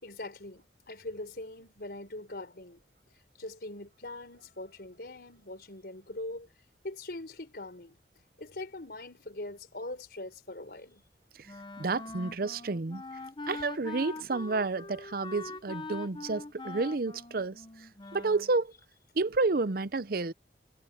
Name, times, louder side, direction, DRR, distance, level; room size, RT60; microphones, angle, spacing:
voice 1, 0.0-2.8 3.4-6.5 6.8-8.0 8.4-11.0, left 2 dB, 60° left, 4.5 m, -42 dB
Wind instrument woodwind instrument, 11.5-18.5, left 2 dB, 25° left, 0.8 m, -43 dB
voice 2, 11.8-13.0 13.5-17.6 18.1-18.7 19.2-20.3, right 3 dB, 55° right, 0.6 m, -30 dB
head